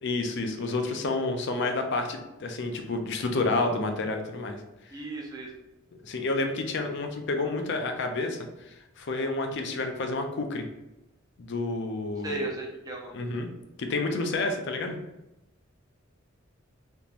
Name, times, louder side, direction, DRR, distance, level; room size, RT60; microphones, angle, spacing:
voice 1, 0.0-4.6 6.0-10.7 11.4-12.5 13.1-13.5 13.8-15.0, left 3 dB, 60° left, 5 dB, 0.5 m, -30 dB
voice 2, 4.9-5.5 12.2-13.1, right 2 dB, 20° right, -1 dB, 0.6 m, -35 dB
3.5 x 2.9 x 2.5 m, 0.95 s
head